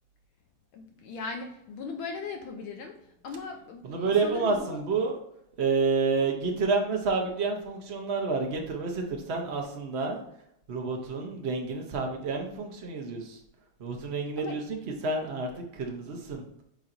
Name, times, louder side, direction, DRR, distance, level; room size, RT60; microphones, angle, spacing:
voice 1, 0.7-4.8 14.4-14.6, left 4 dB, 75° left, 4 dB, 1.4 m, -38 dB
voice 2, 3.8-5.2 5.6-10.2 10.7-13.4 13.8-16.4, right 4 dB, 80° right, 2 dB, 0.5 m, -29 dB
8.5 x 4.3 x 2.6 m, 0.77 s
omnidirectional pair, 2.4 m